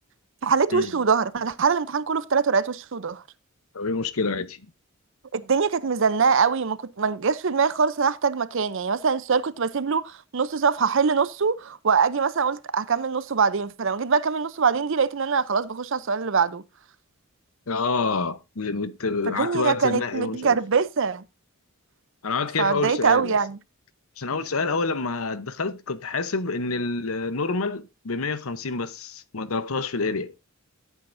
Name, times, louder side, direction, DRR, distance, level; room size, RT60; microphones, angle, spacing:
voice 1, 0.4-3.2 5.3-16.6 19.3-21.2 22.6-23.6, right 5 dB, 60° right, 0.6 m, -23 dB
voice 2, 3.7-4.6 17.7-20.6 22.2-23.4 24.2-30.3, left 4 dB, 75° left, 0.9 m, -27 dB
13.5 x 8.2 x 2.6 m
head